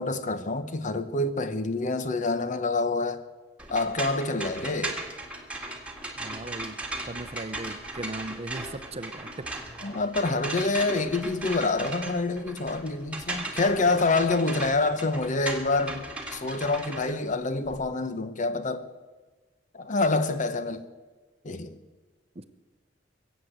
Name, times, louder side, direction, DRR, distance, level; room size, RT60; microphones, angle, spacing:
voice 1, 0.0-3.2 3.7-5.0 9.8-18.9 19.7-20.8 21.4-21.7, left 3 dB, 40° left, 0.9 m, -27 dB
sound 1, 3.6-17.8, right 2 dB, 5° right, 1.8 m, -37 dB
voice 2, 6.2-6.8 7.1-9.5 22.4-22.5, right 2 dB, 35° right, 0.7 m, -38 dB
22.0 x 8.2 x 7.9 m
head